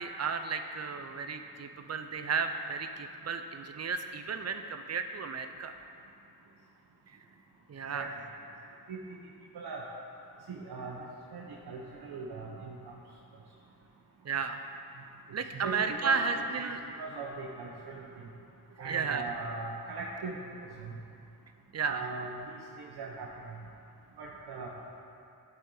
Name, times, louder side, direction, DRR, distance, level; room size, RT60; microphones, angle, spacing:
voice 1, 0.0-5.7 7.7-8.1 14.3-14.6 15.3-16.8 18.8-19.2 21.7-22.0, right 5 dB, 45° right, 7 dB, 0.4 m, -33 dB
voice 2, 10.5-11.0 11.3-12.9 15.5-16.7 17.0-18.0 18.8-20.4 20.8-21.0 21.8-22.5 22.8-23.3 24.2-24.7, right 4 dB, 80° right, -3 dB, 0.8 m, -40 dB
11.5 x 4.4 x 3.8 m, 2.6 s
wide cardioid pair, 105°, 38 cm